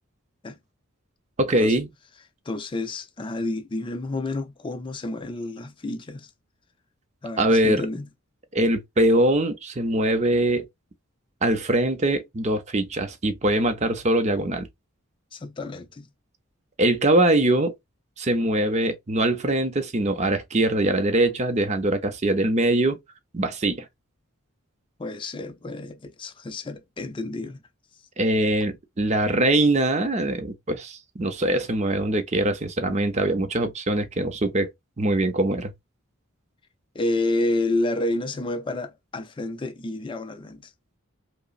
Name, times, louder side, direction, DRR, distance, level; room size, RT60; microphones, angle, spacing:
voice 1, 1.4-1.9 7.4-7.9 8.5-10.7 11.4-14.7 16.8-17.7 18.2-23.0 23.3-23.8 28.2-34.7 35.0-35.7, right 1 dB, 30° right, 0.6 m, -22 dB
voice 2, 2.5-6.3 7.2-8.1 15.3-16.1 25.0-27.6 36.9-40.7, left 2 dB, 25° left, 0.4 m, -29 dB
5.2 x 2.0 x 2.4 m
head